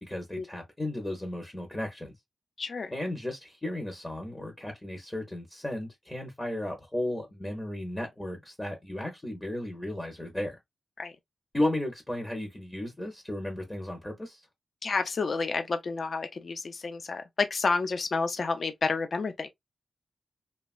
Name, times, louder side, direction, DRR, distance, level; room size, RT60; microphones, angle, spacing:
voice 1, 0.0-2.1 2.9-10.6 11.5-14.5, left 1 dB, 15° left, 0.6 m, -34 dB
voice 2, 2.6-2.9 11.0-11.1 14.8-19.5, left 4 dB, 50° left, 0.4 m, -30 dB
3.0 x 2.2 x 2.4 m
wide cardioid pair, 135°, 0 cm